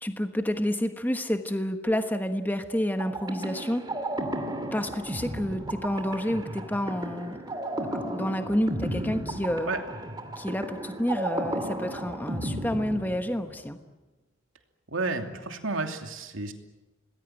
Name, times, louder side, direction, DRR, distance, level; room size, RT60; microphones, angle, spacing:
voice 1, 0.0-3.8 4.7-7.4 8.1-9.7 10.4-13.8, equal, 10° left, 7 dB, 1.2 m, -29 dB
sound 1, 3.0-13.7, right 1 dB, 20° right, 2.6 m, -34 dB
voice 2, 14.9-16.5, right 3 dB, 80° right, 5 dB, 2.8 m, -31 dB
26.5 x 20.0 x 9.1 m, 1.2 s
head